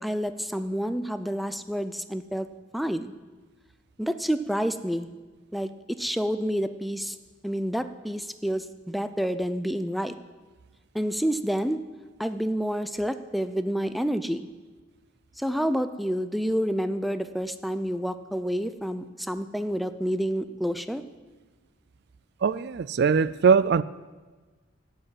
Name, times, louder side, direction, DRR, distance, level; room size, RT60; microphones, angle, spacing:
voice 1, 0.0-2.5 2.7-3.1 4.0-5.1 5.5-7.2 7.4-10.1 10.9-11.8 12.2-14.5 15.4-21.0, equal, ahead, 11 dB, 0.5 m, -29 dB
voice 2, 22.4-23.8, right 6 dB, 55° right, 17 dB, 0.4 m, -21 dB
12.0 x 8.8 x 9.3 m, 1.3 s
head